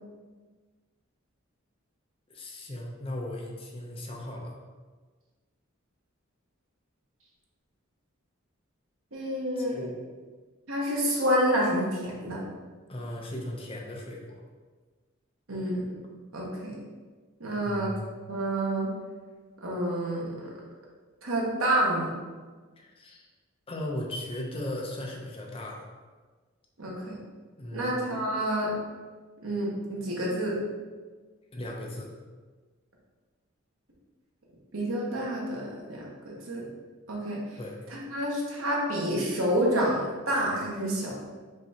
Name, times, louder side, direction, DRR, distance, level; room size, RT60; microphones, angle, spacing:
voice 1, 2.3-4.6 9.6-9.7 12.9-14.4 17.5-18.0 22.8-23.3 23.7-25.9 27.6-28.0 31.5-32.1 37.5-37.8, left 1 dB, 25° left, -1 dB, 0.6 m, -37 dB
voice 2, 9.1-9.9 10.7-12.4 15.5-15.9 16.3-16.8 17.4-17.9 18.3-18.9 19.6-20.3 21.2-22.1 26.8-27.2 27.7-28.7 29.4-30.6 34.7-36.6 37.1-37.4 37.9-41.1, right 1 dB, 80° right, -3 dB, 1.2 m, -28 dB
5.2 x 3.3 x 2.8 m, 1.4 s
head